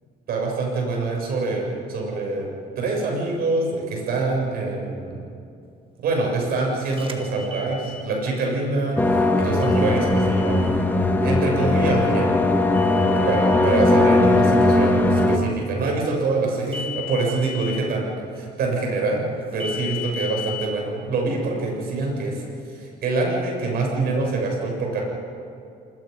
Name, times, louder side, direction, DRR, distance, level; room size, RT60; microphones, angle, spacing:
voice 1, 0.3-2.5 2.8-5.2 6.0-10.7 11.2-12.3 13.1-18.1 18.4-19.2 19.5-22.4 22.7-25.1, right 3 dB, 65° right, 0 dB, 7.8 m, -25 dB
sound 1, 6.9-8.1 9.6-10.7 12.7-13.8 16.7-17.8 19.6-20.7, left 5 dB, 30° right, 1.9 m, -35 dB
sound 2, 9.0-15.4, left 2 dB, 10° left, 2.0 m, -19 dB
27.5 x 21.0 x 5.6 m, 2.5 s
cardioid pair, 110°, 17 cm